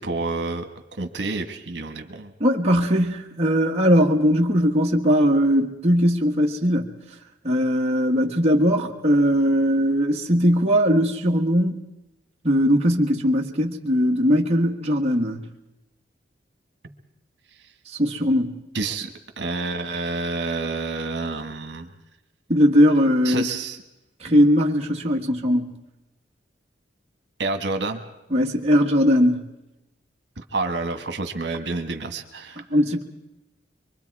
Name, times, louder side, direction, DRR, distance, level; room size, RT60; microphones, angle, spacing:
voice 1, 0.0-2.3 18.7-19.1 19.4-21.9 23.2-23.8 27.4-28.0 30.5-32.6, right 3 dB, 65° right, 1.7 m, -28 dB
voice 2, 2.4-6.9 7.4-11.8 12.4-15.4 17.9-18.6 22.5-23.5 24.2-25.7 28.3-29.5 32.7-33.0, equal, 35° right, 1.6 m, -20 dB
24.5 x 24.0 x 4.8 m
head